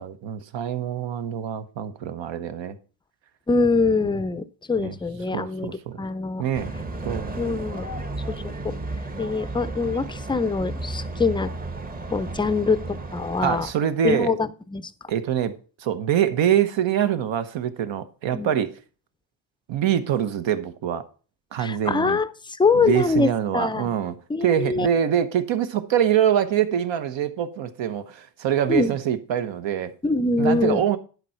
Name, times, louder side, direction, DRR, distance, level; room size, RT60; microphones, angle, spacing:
voice 1, 0.0-2.8 4.8-5.0 5.3-6.1 6.4-6.7 7.0-7.3 13.4-14.3 15.1-15.5 15.8-18.7 19.7-21.0 21.5-22.2 22.7-24.2 24.4-29.9 30.4-31.0, right 9 dB, 75° right, 1.1 m, -24 dB
voice 2, 3.5-5.7 6.0-6.4 7.4-7.9 8.3-8.8 9.2-11.5 12.1-13.7 14.0-14.9 18.3-18.5 21.6-23.9 24.3-24.9 28.7-28.9 30.0-30.8, left 3 dB, 10° left, 0.4 m, -24 dB
sound 1, 6.5-13.7, right 2 dB, 20° right, 0.9 m, -33 dB
10.5 x 4.6 x 5.8 m
cardioid pair, 115°, 46 cm